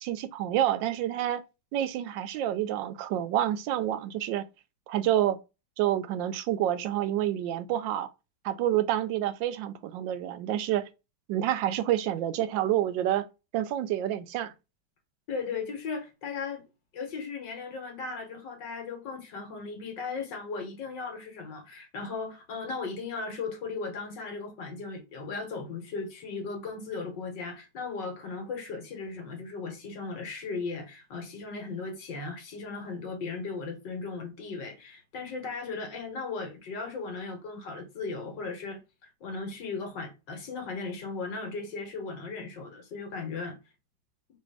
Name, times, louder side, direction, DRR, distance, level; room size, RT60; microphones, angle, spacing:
voice 1, 0.0-1.4 1.7-4.4 4.9-5.4 5.8-8.1 8.4-10.9 11.3-13.3 13.5-14.5, right 12 dB, 85° right, 1.3 m, -28 dB
voice 2, 15.3-16.6 16.9-43.6, left 4 dB, 75° left, 1.9 m, -37 dB
4.1 x 2.5 x 4.8 m
omnidirectional pair, 2.0 m